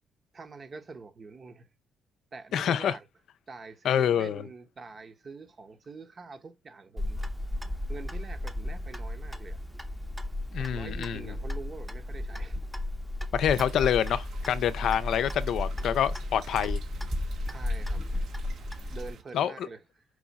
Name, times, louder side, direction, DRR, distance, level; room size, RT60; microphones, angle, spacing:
voice 1, 0.3-1.7 2.3-3.1 3.5-7.2 7.9-9.6 10.6-12.6 17.4-18.1 18.9-20.0, right 4 dB, 40° right, 0.8 m, -45 dB
voice 2, 2.5-3.0 3.8-4.5 10.5-11.3 13.3-16.8 19.3-19.7, left 9 dB, 70° left, 0.4 m, -27 dB
Clock, 7.0-19.1, left 1 dB, 5° right, 0.7 m, -34 dB
sound 1, 13.5-19.2, right 6 dB, 70° right, 0.8 m, -49 dB
4.7 x 2.4 x 4.0 m
cardioid pair, 90°, 0 cm